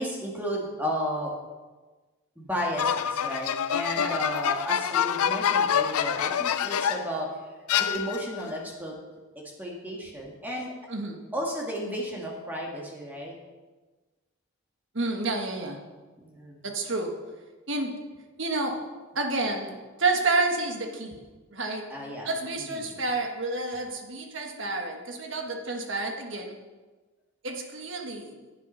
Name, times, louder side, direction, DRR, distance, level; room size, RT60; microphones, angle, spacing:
voice 1, 0.0-1.3 2.4-7.3 7.7-8.9 9.6-10.7 11.3-13.4 16.2-16.6 21.9-23.0, equal, 10° right, -2 dB, 1.9 m, -33 dB
sound 1, 2.8-7.2 7.7-8.4, left 8 dB, 90° left, 0.5 m, -26 dB
voice 2, 14.9-15.8 16.6-17.1 17.7-18.0 18.4-18.8 19.1-21.2 21.5-21.9 22.2-26.6 27.4-28.3, right 3 dB, 55° right, 3 dB, 1.5 m, -29 dB
10.5 x 7.8 x 5.7 m, 1.3 s
head